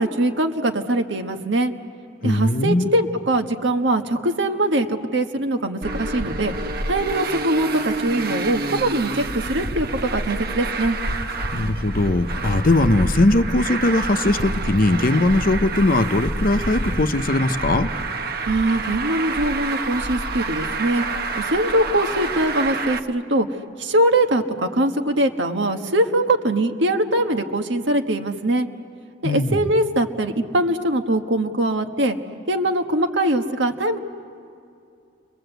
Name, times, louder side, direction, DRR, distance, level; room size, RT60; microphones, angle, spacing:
voice 1, 0.0-1.7 2.2-6.5 6.9-11.0 18.5-21.0 21.3-28.7 29.2-32.2 32.5-34.0, right 1 dB, 85° right, 5 dB, 1.5 m, -22 dB
voice 2, 2.2-2.9 11.5-17.9 29.2-29.6, left 2 dB, 50° left, 10 dB, 0.8 m, -20 dB
Traffic noise roadway noise, 5.8-23.0, right 2 dB, 55° right, 1.1 m, -28 dB
30.0 x 23.0 x 8.1 m, 2.5 s
head